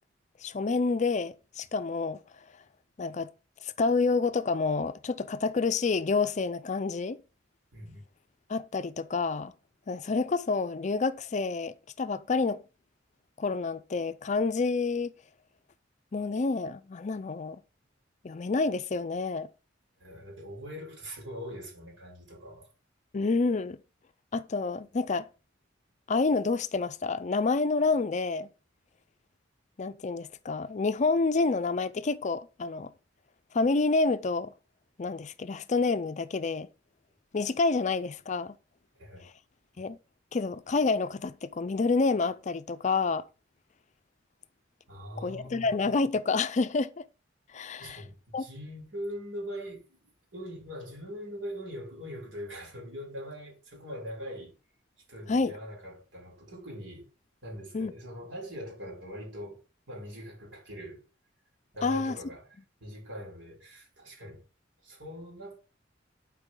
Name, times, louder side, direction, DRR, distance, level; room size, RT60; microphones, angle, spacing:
voice 1, 0.4-2.2 3.0-3.3 3.6-7.2 8.5-9.5 9.9-12.6 13.4-15.1 16.1-17.6 18.2-19.5 23.1-23.8 24.3-25.3 26.1-28.5 29.8-32.9 33.5-34.5 35.0-36.7 37.3-38.6 39.8-40.0 40.3-43.3 45.2-47.1 47.5-48.0 48.3-48.4 55.3-55.5 57.7-57.9 61.8-62.2, left 4 dB, 40° left, 0.4 m, -28 dB
voice 2, 7.7-8.0 20.0-22.7 39.0-39.3 44.9-45.6 47.8-54.5 55.1-57.1 57.4-61.0 61.7-64.4 64.8-65.6, equal, 75° right, 3.7 m, -42 dB
11.5 x 4.8 x 3.8 m
head